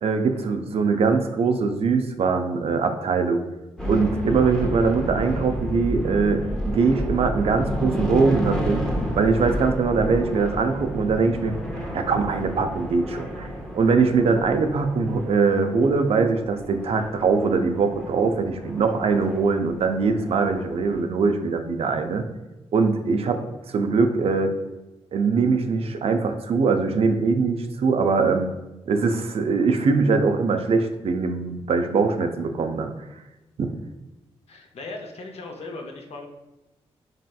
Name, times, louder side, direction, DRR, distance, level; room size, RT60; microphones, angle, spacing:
voice 1, 0.0-3.4 3.9-8.9 9.1-13.5 13.7-22.2 22.7-23.4 23.7-24.5 25.1-28.5 28.9-32.9 33.6-33.7, right 4 dB, 60° right, 7 dB, 0.4 m, -22 dB
sound 1, 3.8-21.0, equal, 5° left, 0.7 m, -31 dB
voice 2, 34.5-36.3, left 3 dB, 65° left, 2 dB, 0.6 m, -37 dB
3.1 x 2.7 x 2.2 m, 1.0 s
supercardioid pair, 50°, 12 cm